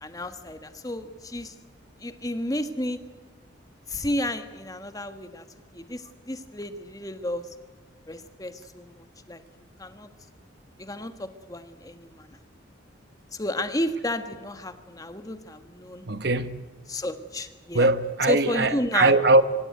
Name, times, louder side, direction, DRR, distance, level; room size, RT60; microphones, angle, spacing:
voice 1, 0.0-1.5 2.0-3.0 3.9-5.4 5.7-7.5 8.1-9.4 9.8-10.1 10.8-12.4 13.3-16.1 16.9-17.9 18.3-19.1, left 1 dB, 20° left, 1.4 m, -32 dB
voice 2, 16.1-16.6 17.7-19.4, right 2 dB, 55° right, 1.2 m, -21 dB
25.0 x 16.5 x 9.4 m
head